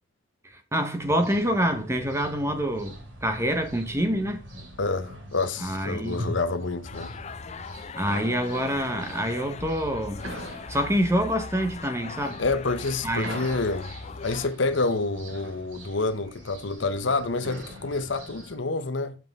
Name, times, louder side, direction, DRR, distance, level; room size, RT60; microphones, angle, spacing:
voice 1, 0.5-2.9 3.2-4.4 5.6-6.2 7.9-10.3 10.7-12.4 13.0-13.4, equal, 15° right, 1.1 m, -26 dB
sound 1, 1.0-18.6, equal, 80° right, 2.9 m, -42 dB
voice 2, 4.8-7.1 12.4-13.9 14.2-19.2, left 3 dB, 70° left, 0.9 m, -28 dB
sound 2, 6.8-14.5, left 5 dB, 35° left, 0.5 m, -40 dB
7.3 x 6.0 x 3.6 m
head